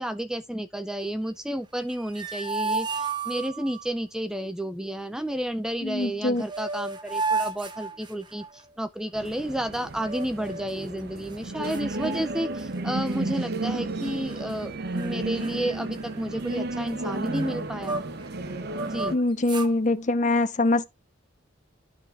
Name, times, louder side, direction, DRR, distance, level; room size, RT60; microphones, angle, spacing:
voice 1, 0.0-18.0 18.9-19.2, right 1 dB, 5° right, 0.4 m, -31 dB
sound 1, 1.8-3.9 6.0-6.1 6.4-8.6 10.0-10.8 11.3-11.4 11.7-12.8 13.1-13.4 14.0-14.7 15.0-15.1 15.4-18.3 18.7-19.8, right 4 dB, 25° right, 0.8 m, -33 dB
voice 2, 5.8-6.4 19.1-20.8, left 2 dB, 35° left, 0.7 m, -23 dB
sound 2, 9.1-19.1, right 2 dB, 50° right, 0.7 m, -33 dB
11.5 x 3.9 x 4.1 m
head